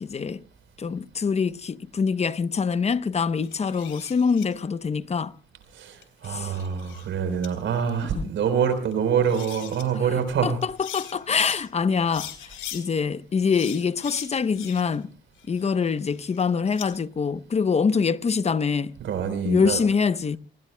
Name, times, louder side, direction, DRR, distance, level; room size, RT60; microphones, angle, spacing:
voice 1, 0.0-0.4 0.8-5.3 6.3-6.5 8.1-8.3 10.4-12.3 12.7-15.1 15.5-19.0 19.4-20.4, left 5 dB, 35° left, 0.8 m, -24 dB
sound 1, 3.4-4.5 6.0-7.1 7.4-7.5 8.9-9.0 9.2-9.8 10.6-11.6 12.1-12.8 13.5-15.0 15.4-16.9, left 11 dB, 85° left, 3.5 m, -40 dB
voice 2, 5.7-10.6 19.0-19.8, right 7 dB, 75° right, 4.2 m, -25 dB
28.0 x 20.0 x 2.2 m
cardioid pair, 90°, 20 cm